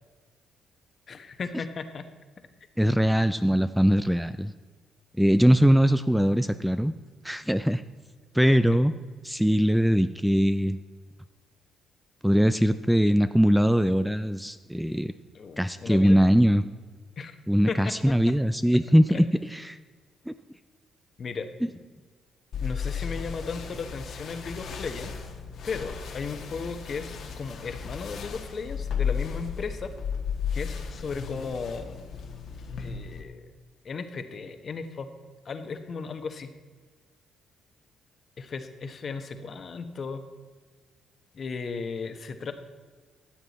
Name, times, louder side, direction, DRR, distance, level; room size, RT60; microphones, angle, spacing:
voice 1, 1.1-2.1 8.5-8.6 15.3-16.2 17.2-17.3 17.7-17.8 19.1-19.2 21.2-21.5 22.6-25.3 25.6-29.9 30.5-32.0 32.8-33.4 33.8-35.1 35.4-36.5 38.4-40.2 41.3-42.5, left 5 dB, 50° left, 8 dB, 1.1 m, -35 dB
voice 2, 2.8-4.5 5.2-6.9 7.2-7.8 8.3-8.9 9.2-10.8 12.2-15.1 15.6-16.6 17.5-19.2 19.5-19.8 20.3-20.4, equal, ahead, 11 dB, 0.4 m, -21 dB
sound 1, 22.5-33.2, left 6 dB, 65° left, 1.4 m, -34 dB
14.5 x 7.7 x 4.2 m, 1.5 s
cardioid pair, 80°, 0 cm